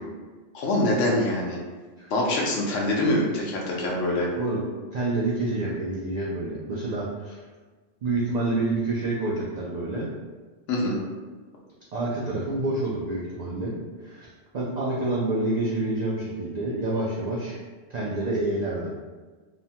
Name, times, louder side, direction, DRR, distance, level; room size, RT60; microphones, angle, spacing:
voice 1, 0.5-1.6 2.1-4.3 10.7-11.0, left 1 dB, 75° left, -2 dB, 1.0 m, -24 dB
voice 2, 4.9-7.4 8.0-10.1 11.9-13.8 14.0-14.3 14.5-17.6 17.9-18.9, right 2 dB, 75° right, -6 dB, 0.3 m, -28 dB
3.0 x 2.1 x 2.7 m, 1.4 s
omnidirectional pair, 1.3 m